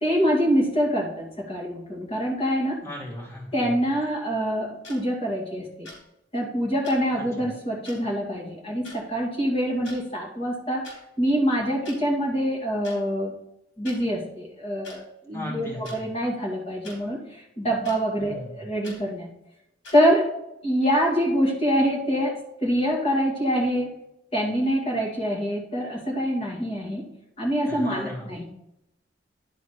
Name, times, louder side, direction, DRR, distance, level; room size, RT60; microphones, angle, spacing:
voice 1, 0.0-2.8 3.5-5.9 6.3-10.9 11.2-13.3 13.8-19.3 19.9-20.3 20.6-23.9 24.3-27.1 27.4-28.4, equal, 30° left, -3 dB, 2.2 m, -25 dB
voice 2, 2.8-3.8 7.1-7.5 15.3-16.1 18.2-18.7 27.7-28.4, equal, 15° left, -5 dB, 2.7 m, -37 dB
sound 1, 4.8-5.0 5.8-6.0 6.8-7.0 7.8-8.0 8.8-9.0 9.7-10.0 10.8-11.0 11.8-12.0 12.8-13.0 13.8-14.0 14.8-15.0 15.8-16.0 16.8-17.0 17.8-18.0 18.8-19.0 19.8-20.0, left 2 dB, 85° left, 3.4 m, -43 dB
10.5 x 4.2 x 4.8 m, 0.83 s
head